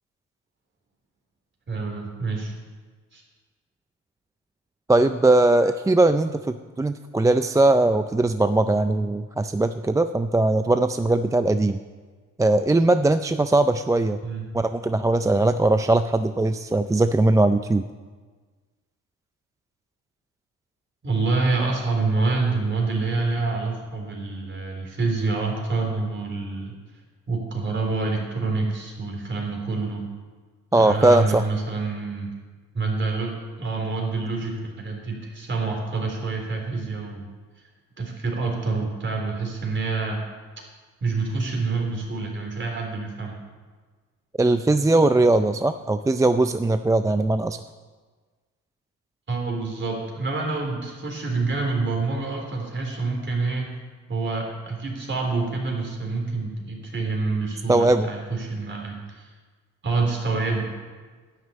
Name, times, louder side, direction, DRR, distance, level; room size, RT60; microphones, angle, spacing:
voice 1, 1.7-2.5 3.1-3.2 14.2-14.5 21.0-26.7 27.3-30.0 30.7-32.3 32.7-33.3 33.6-37.3 38.0-40.2 41.0-43.3 49.3-53.7 54.1-59.3 59.8-60.7, right 3 dB, 40° right, 1 dB, 3.8 m, -27 dB
voice 2, 4.9-11.8 12.4-14.2 14.5-17.8 30.7-31.5 44.4-47.6 57.7-58.1, right 2 dB, 10° right, 10 dB, 0.4 m, -20 dB
10.5 x 7.9 x 8.6 m, 1.4 s
cardioid pair, 90°, 30 cm